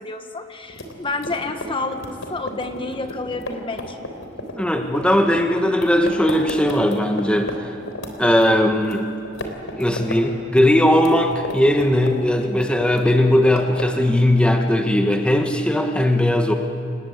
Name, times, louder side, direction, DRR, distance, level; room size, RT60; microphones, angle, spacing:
voice 1, 0.0-4.0, left 3 dB, 25° left, 6 dB, 1.3 m, -29 dB
sound 1, 0.7-7.6 7.9-9.0 9.2-10.2 10.5-12.3 12.6-14.0, left 1 dB, 85° left, 3.6 m, -33 dB
voice 2, 4.6-7.7 8.2-9.0 9.8-16.5, left 1 dB, 5° left, 4 dB, 1.3 m, -18 dB
28.5 x 20.0 x 8.1 m, 2.5 s
head